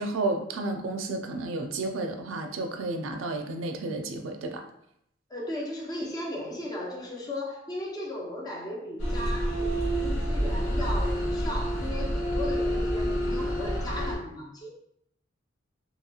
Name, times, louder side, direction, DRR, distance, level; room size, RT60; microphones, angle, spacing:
voice 1, 0.0-4.6, right 2 dB, 80° right, 5 dB, 0.4 m, -31 dB
voice 2, 5.3-14.7, left 1 dB, 20° left, -1 dB, 0.5 m, -36 dB
sound 1, 9.0-14.1, equal, 90° left, 1.0 m, -28 dB
2.9 x 2.8 x 2.3 m, 0.74 s
head